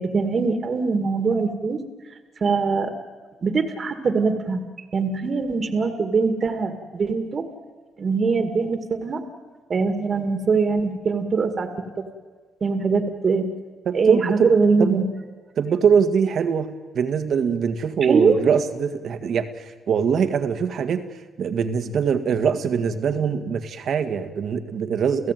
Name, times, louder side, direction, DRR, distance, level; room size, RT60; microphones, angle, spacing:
voice 1, 0.0-1.8 2.4-2.9 3.4-4.6 4.9-7.5 8.0-9.2 9.7-11.7 12.0-12.1 12.6-13.4 13.9-15.0 18.0-18.4, right 4 dB, 45° right, 8 dB, 2.2 m, -22 dB
voice 2, 13.9-14.5 14.8-15.0 15.6-16.7 16.9-21.0 21.4-25.3, right 6 dB, 60° right, 8 dB, 1.9 m, -22 dB
29.5 x 15.5 x 9.3 m, 1.4 s
cardioid pair, 90°, 0 cm